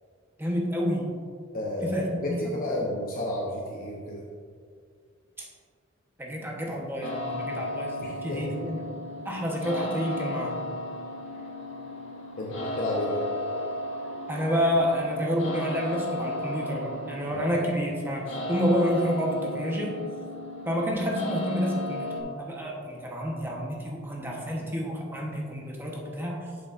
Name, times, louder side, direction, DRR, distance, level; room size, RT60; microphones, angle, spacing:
voice 1, 0.4-1.1 1.8-2.4 6.2-8.8 9.2-10.6 14.3-19.9 20.6-26.4, equal, 10° right, -2 dB, 1.1 m, -29 dB
voice 2, 1.5-4.3 8.0-8.6 12.4-13.2 17.3-17.5, left 1 dB, 45° left, -3 dB, 0.8 m, -31 dB
sound 1, 7.0-22.2, left 1 dB, 70° left, 1.5 m, -35 dB
8.3 x 7.1 x 2.6 m, 2.1 s
head